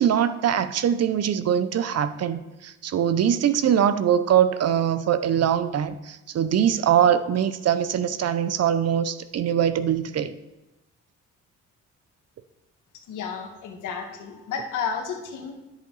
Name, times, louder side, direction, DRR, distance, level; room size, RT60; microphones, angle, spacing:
voice 1, 0.0-10.3, right 9 dB, 55° right, 12 dB, 0.7 m, -22 dB
voice 2, 13.1-15.5, left 6 dB, 85° left, 2 dB, 1.7 m, -32 dB
10.5 x 8.0 x 4.0 m, 1.0 s
cardioid pair, 90°, 30 cm